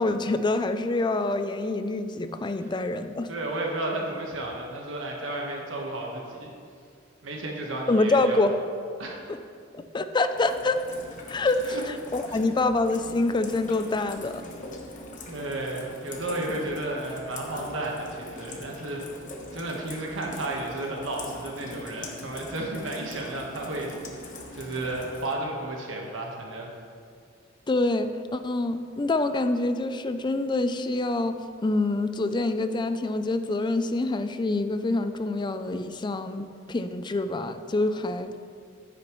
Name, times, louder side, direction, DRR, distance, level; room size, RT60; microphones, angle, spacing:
voice 1, 0.0-3.3 7.9-8.5 9.3-9.4 9.7-10.8 11.3-14.4 27.7-31.4 31.6-38.3, left 2 dB, 25° left, 9 dB, 0.4 m, -26 dB
voice 2, 3.3-6.5 7.2-8.4 9.0-9.2 11.6-11.8 12.3-12.4 15.3-19.0 19.5-24.2 24.5-26.7, right 2 dB, 75° right, -1 dB, 1.3 m, -33 dB
Rain, 10.4-25.3, left 2 dB, 40° left, 1.1 m, -42 dB
9.7 x 9.3 x 3.1 m, 2.3 s
head